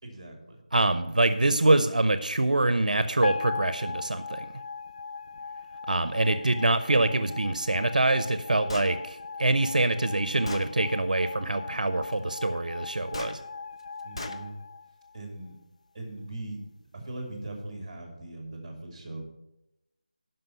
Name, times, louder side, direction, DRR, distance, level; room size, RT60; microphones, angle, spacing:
voice 1, 0.0-0.6 14.0-14.5 15.1-15.6 15.9-16.6 16.9-19.2, right 2 dB, 20° right, 2 dB, 2.2 m, -40 dB
voice 2, 0.7-4.5 5.9-13.4, right 2 dB, 80° right, 11 dB, 0.6 m, -25 dB
sound 1, 3.2-15.5, left 5 dB, 65° left, 0.4 m, -39 dB
Gunshot gunfire, 8.7-8.9 9.8-9.9 10.5-10.7 13.1-13.4 14.2-14.4, left 2 dB, 40° left, 0.7 m, -36 dB
11.0 x 5.7 x 5.5 m, 0.92 s
figure-of-eight pair, 175°, 4 cm